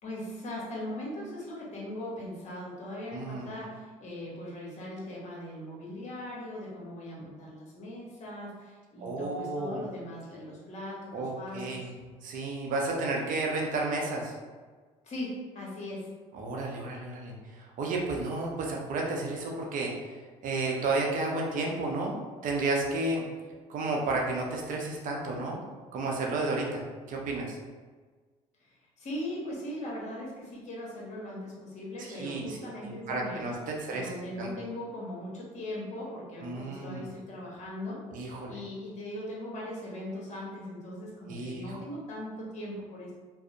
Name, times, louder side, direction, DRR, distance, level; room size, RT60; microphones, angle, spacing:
voice 1, 0.0-11.9 15.0-16.1 28.6-33.5 33.9-43.1, left 1 dB, 50° left, -4 dB, 1.0 m, -39 dB
voice 2, 3.1-3.5 9.0-9.8 11.1-11.9 12.2-14.3 16.3-20.1 20.4-23.2 23.7-25.6 25.9-26.8 27.1-27.6 32.0-32.6 32.8-34.1 34.4-34.5 36.4-37.1 38.1-38.5 41.3-41.8, right 2 dB, 55° right, -1 dB, 0.6 m, -32 dB
2.5 x 2.0 x 2.6 m, 1.4 s
hypercardioid pair, 65°, 16 cm